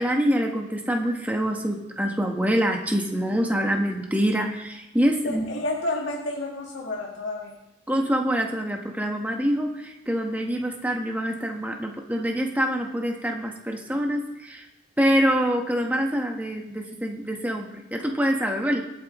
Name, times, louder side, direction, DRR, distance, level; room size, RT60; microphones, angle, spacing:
voice 1, 0.0-5.5 7.9-14.6 15.0-18.8, equal, 10° right, 1 dB, 1.3 m, -25 dB
voice 2, 5.2-7.6, left 2 dB, 75° left, -2 dB, 1.8 m, -30 dB
23.0 x 8.8 x 3.1 m, 0.89 s
head